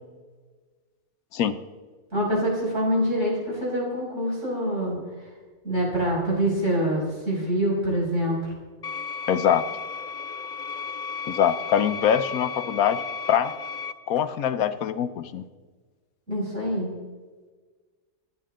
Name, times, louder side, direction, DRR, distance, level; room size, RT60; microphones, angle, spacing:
voice 1, 2.1-5.0 5.6-8.5 16.3-16.9, equal, 55° right, -4 dB, 6.5 m, -25 dB
sound 1, 8.8-13.9, left 5 dB, 45° left, 0.6 m, -34 dB
voice 2, 9.3-9.7 11.3-13.0 13.3-13.5 14.1-15.4, left 9 dB, 90° left, 12 dB, 1.3 m, -23 dB
26.0 x 10.5 x 3.8 m, 1.4 s
omnidirectional pair, 1.5 m